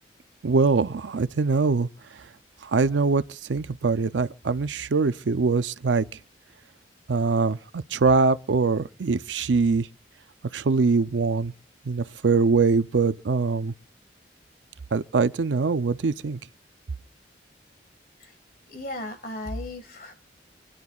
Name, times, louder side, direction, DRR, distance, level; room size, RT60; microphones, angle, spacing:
voice 1, 0.4-1.9 2.6-6.1 7.1-9.9 10.5-11.5 11.9-13.7 14.9-16.4, right 4 dB, 85° right, 0.5 m, -23 dB
voice 2, 18.7-20.1, left 1 dB, 50° left, 1.9 m, -35 dB
28.5 x 10.5 x 2.4 m
head